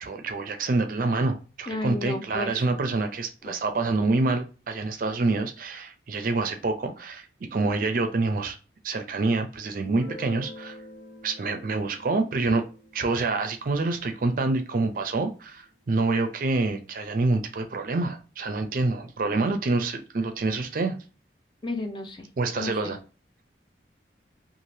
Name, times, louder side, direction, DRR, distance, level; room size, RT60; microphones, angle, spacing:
voice 1, 0.0-8.6 8.8-10.8 11.2-12.6 12.9-21.0 22.4-23.0, right 3 dB, 50° right, 0.4 m, -27 dB
voice 2, 1.7-2.6 3.5-3.6 21.6-22.3 22.6-22.9, left 2 dB, 25° left, 0.5 m, -32 dB
Guitar, 9.8-15.3, left 1 dB, 85° left, 1.0 m, -47 dB
2.7 x 2.4 x 3.2 m
head